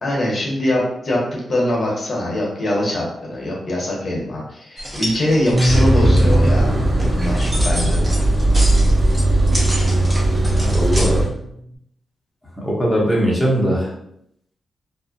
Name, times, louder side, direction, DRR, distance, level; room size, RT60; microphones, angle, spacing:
voice 1, 0.0-6.7 7.1-8.1, left 1 dB, 50° left, -3 dB, 0.9 m, -22 dB
sound 1, 4.8-11.1, equal, 15° right, 0.8 m, -30 dB
Bass guitar, 5.5-11.8, equal, 65° right, 0.8 m, -27 dB
sound 2, 5.7-11.3, right 1 dB, 35° right, 1.2 m, -17 dB
voice 2, 10.6-11.2 12.6-13.9, equal, 15° left, -5 dB, 0.8 m, -20 dB
2.4 x 2.0 x 2.5 m, 0.73 s
cardioid pair, 55°, 0 cm